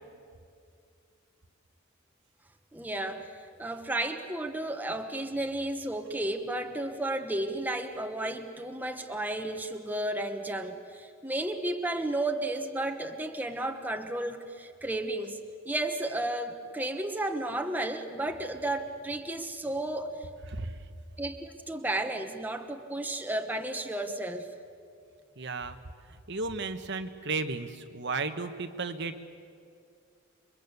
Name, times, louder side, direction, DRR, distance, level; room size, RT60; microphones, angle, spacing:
voice 1, 2.7-15.4 15.6-20.3 21.2-24.5, right 1 dB, 10° right, 5 dB, 1.3 m, -33 dB
voice 2, 25.4-25.8 26.3-29.2, right 3 dB, 60° right, 8 dB, 1.4 m, -34 dB
29.0 x 23.5 x 8.3 m, 2.3 s
head